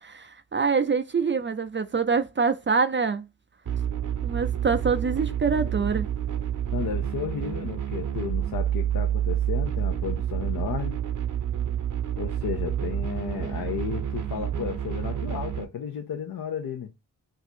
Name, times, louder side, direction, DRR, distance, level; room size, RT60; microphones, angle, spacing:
voice 1, 0.0-3.2 4.2-6.1, right 5 dB, 30° right, 0.4 m, -25 dB
sound 1, 3.6-15.6, right 10 dB, 45° right, 0.8 m, -29 dB
voice 2, 6.7-11.0 12.2-16.9, left 7 dB, 55° left, 0.7 m, -33 dB
2.7 x 2.4 x 4.2 m
cardioid pair, 50°, 42 cm